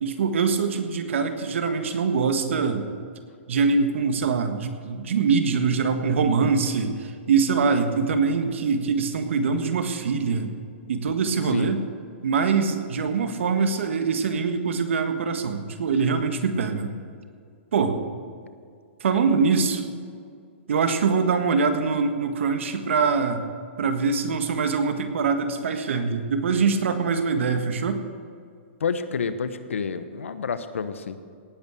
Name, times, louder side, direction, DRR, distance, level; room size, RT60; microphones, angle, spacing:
voice 1, 0.0-2.9 3.5-10.5 10.9-11.8 12.2-16.9 17.7-18.0 19.0-19.8 20.7-23.4 23.8-28.0, right 5 dB, 75° right, 7 dB, 1.6 m, -23 dB
voice 2, 28.8-31.2, left 5 dB, 90° left, 12 dB, 1.0 m, -29 dB
18.0 x 8.7 x 6.3 m, 2.2 s
hypercardioid pair, 135°, 7 cm